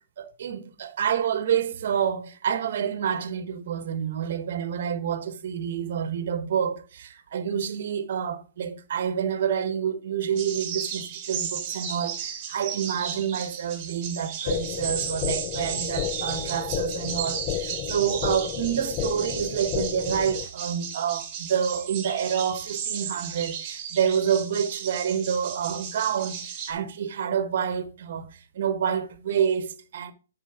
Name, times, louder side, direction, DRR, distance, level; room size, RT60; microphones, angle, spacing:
voice 1, 0.2-30.1, right 8 dB, 50° right, 1.4 m, -28 dB
sound 1, 10.4-26.7, right 8 dB, 30° right, 2.1 m, -35 dB
sound 2, 14.5-20.5, left 13 dB, 25° left, 0.4 m, -32 dB
9.2 x 5.5 x 5.0 m
hypercardioid pair, 155°, 0 cm